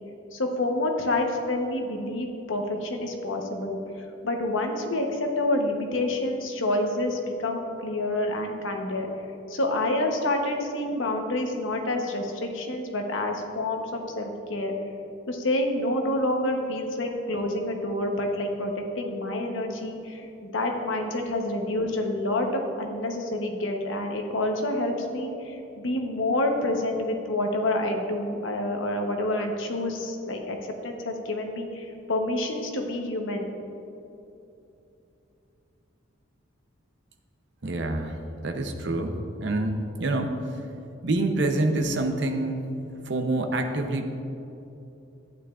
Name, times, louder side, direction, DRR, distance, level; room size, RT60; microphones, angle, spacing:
voice 1, 0.3-3.8 4.2-9.1 9.5-14.7 15.3-30.6 30.8-33.5, left 1 dB, 70° left, 3 dB, 0.9 m, -28 dB
voice 2, 37.6-38.2 38.4-39.1 39.4-40.3 41.0-42.7 43.1-44.1, right 2 dB, 55° right, 4 dB, 0.7 m, -26 dB
11.5 x 8.9 x 2.4 m, 2.8 s
head